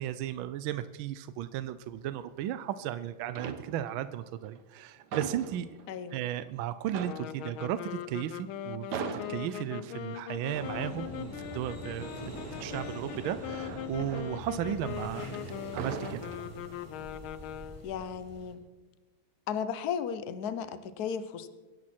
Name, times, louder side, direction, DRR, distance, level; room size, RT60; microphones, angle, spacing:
voice 1, 0.0-5.7 6.1-15.3 15.7-16.3, right 11 dB, 75° right, 12 dB, 1.4 m, -35 dB
sound 1, 2.2-2.9 3.3-4.1 4.4-6.2 6.5-6.6 6.9-15.2 15.5-17.0 17.4-17.7, right 6 dB, 55° right, 1.5 m, -42 dB
sound 2, 7.0-18.0, left 11 dB, 80° left, 1.5 m, -41 dB
sound 3, 10.5-18.5, equal, 15° left, 4.2 m, -44 dB
voice 2, 17.8-18.6 19.5-21.5, left 7 dB, 55° left, 12 dB, 1.2 m, -35 dB
23.5 x 11.0 x 4.4 m, 1.3 s
omnidirectional pair, 2.3 m